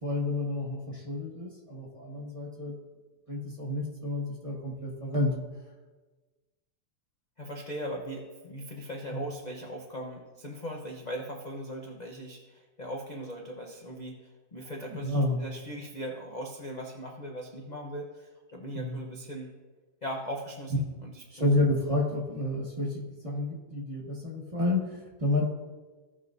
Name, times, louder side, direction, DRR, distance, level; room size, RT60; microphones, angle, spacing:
voice 1, 0.0-2.7 3.3-5.3 9.1-9.2 15.0-15.4 18.7-19.0 21.3-25.4, left 2 dB, 20° right, -2 dB, 1.3 m, -30 dB
voice 2, 7.4-19.5 20.0-21.5, equal, 40° left, 0 dB, 0.6 m, -39 dB
17.0 x 6.1 x 2.6 m, 1.3 s
omnidirectional pair, 2.1 m